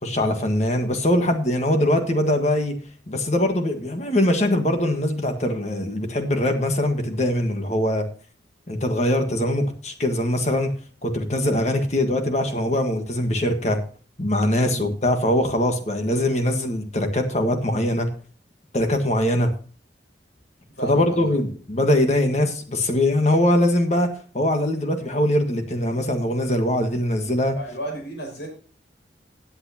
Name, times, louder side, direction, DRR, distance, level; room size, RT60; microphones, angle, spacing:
voice 1, 0.0-2.7 3.1-8.1 8.7-10.7 11.0-13.8 14.2-18.1 18.7-19.5 20.8-27.5, left 1 dB, 40° left, 5 dB, 1.5 m, -22 dB
voice 2, 20.7-21.3 27.6-28.5, right 1 dB, 70° left, 1 dB, 5.8 m, -33 dB
16.5 x 8.4 x 2.9 m, 0.39 s
head